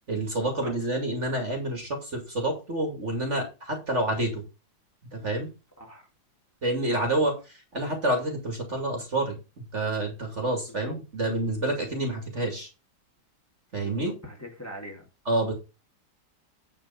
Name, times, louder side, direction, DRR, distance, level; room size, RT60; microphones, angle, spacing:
voice 1, 0.1-4.4 5.1-5.5 6.6-12.7 13.7-14.1 15.3-15.5, right 1 dB, 35° right, 2.6 m, -28 dB
voice 2, 5.8-6.1 6.9-7.2 10.7-10.9 13.8-15.0, equal, 10° left, 2.5 m, -43 dB
10.0 x 4.6 x 5.6 m
omnidirectional pair, 2.1 m